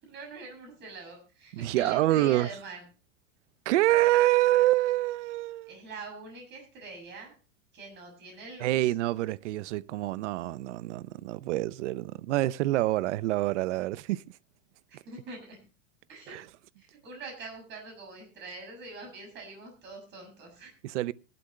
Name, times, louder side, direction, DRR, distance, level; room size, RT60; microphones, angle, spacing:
voice 1, 0.0-2.8 5.7-7.3 7.7-8.9 14.9-15.6 16.1-16.4 16.8-20.7, right 3 dB, 30° right, 6.9 m, -44 dB
voice 2, 1.5-2.5 3.7-5.8 8.6-14.2 16.3-16.4 20.8-21.1, right 16 dB, 70° right, 0.7 m, -26 dB
18.0 x 12.0 x 3.2 m
supercardioid pair, 155°, 37 cm